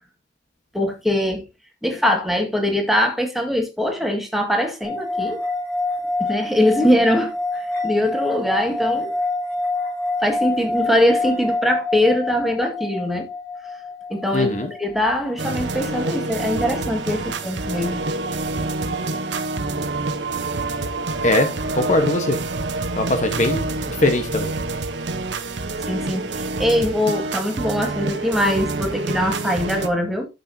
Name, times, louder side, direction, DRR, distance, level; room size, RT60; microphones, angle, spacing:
voice 1, 0.7-1.4 1.8-5.4 6.2-9.1 10.2-13.3 14.1-14.5 14.8-18.0 25.9-30.3, left 1 dB, ahead, 1.9 m, -22 dB
sound 1, 4.8-16.2, left 2 dB, 75° left, 5.0 m, -27 dB
voice 2, 14.3-14.7 21.2-22.4 23.0-24.5, left 2 dB, 40° left, 1.2 m, -21 dB
sound 2, 15.4-29.9, right 3 dB, 70° right, 1.1 m, -27 dB
12.0 x 6.7 x 2.8 m
head